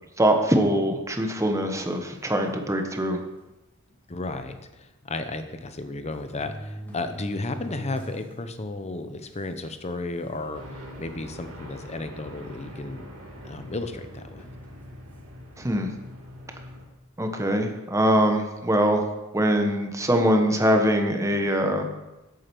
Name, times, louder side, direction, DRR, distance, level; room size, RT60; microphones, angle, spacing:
voice 1, 0.2-3.2 15.6-15.9 17.2-19.0 19.3-21.8, equal, 15° right, 4 dB, 1.2 m, -23 dB
sound 1, 2.5-2.7 3.5-3.6 3.9-4.0 5.3-5.4 6.1-8.3 8.8-8.9 9.7-9.8 10.2-10.5 11.2-11.3 12.6-13.4 14.4-14.6, equal, 10° left, 2.1 m, -41 dB
voice 2, 4.1-13.1 13.4-14.5, left 2 dB, 30° left, 8 dB, 0.9 m, -33 dB
sound 2, 10.5-16.9, equal, 75° right, 2.5 m, -43 dB
8.6 x 7.8 x 6.1 m, 1.0 s
head